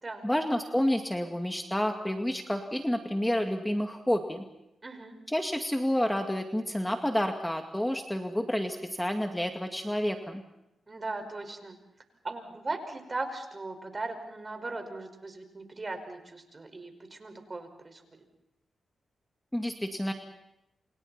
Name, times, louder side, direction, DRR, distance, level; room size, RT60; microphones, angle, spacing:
voice 1, 0.2-4.4 5.3-10.4 19.5-20.1, equal, 10° left, 4 dB, 2.2 m, -29 dB
voice 2, 4.8-5.1 10.9-11.8 12.2-18.2, right 2 dB, 35° right, 7 dB, 5.4 m, -38 dB
29.0 x 28.0 x 4.4 m, 0.87 s
cardioid pair, 65°, 0 cm